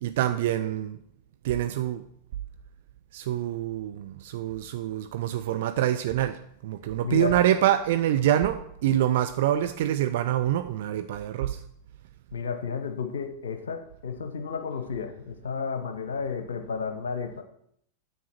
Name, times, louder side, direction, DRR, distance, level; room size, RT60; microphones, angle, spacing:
voice 1, 0.0-1.0 1.4-2.0 3.1-6.4 6.6-11.6, right 12 dB, 55° right, 9 dB, 0.4 m, -26 dB
voice 2, 7.0-7.4 12.3-17.4, left 5 dB, 65° left, 8 dB, 0.9 m, -32 dB
9.8 x 7.5 x 4.4 m, 0.70 s
figure-of-eight pair, 90°, 0 cm